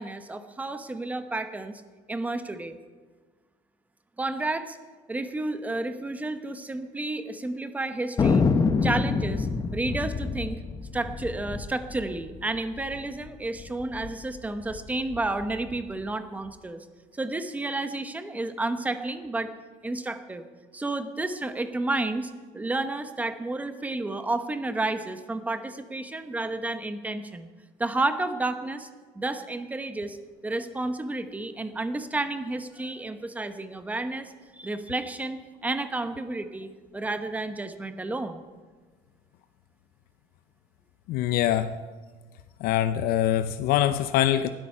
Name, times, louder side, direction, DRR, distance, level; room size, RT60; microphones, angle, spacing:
voice 1, 0.0-1.8 2.1-2.8 4.2-4.8 5.1-8.5 8.8-9.5 9.7-10.6 10.9-16.8 17.1-19.5 19.8-20.4 20.7-27.5 27.8-28.9 29.1-30.2 30.4-38.4, right 2 dB, 10° right, 10 dB, 0.9 m, -31 dB
Thunder, 8.2-13.0 13.3-13.4 13.6-14.1 14.6-15.8, left 4 dB, 20° left, 0.8 m, -26 dB
voice 2, 41.1-41.7 42.6-44.5, left 12 dB, 70° left, 11 dB, 0.6 m, -24 dB
19.0 x 13.0 x 5.6 m, 1.4 s
cardioid pair, 175°, 16 cm